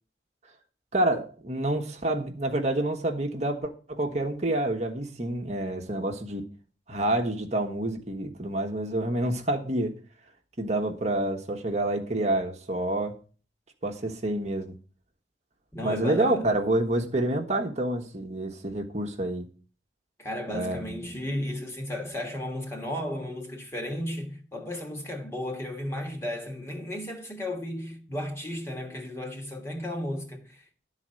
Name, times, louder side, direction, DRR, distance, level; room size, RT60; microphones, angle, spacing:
voice 1, 0.9-6.4 6.9-9.9 10.6-13.2 13.8-14.7 15.8-19.5 20.5-21.2, right 1 dB, 35° right, 1.1 m, -28 dB
voice 2, 15.7-16.5 20.2-30.9, left 1 dB, 15° left, 1.4 m, -34 dB
11.5 x 4.2 x 7.5 m
head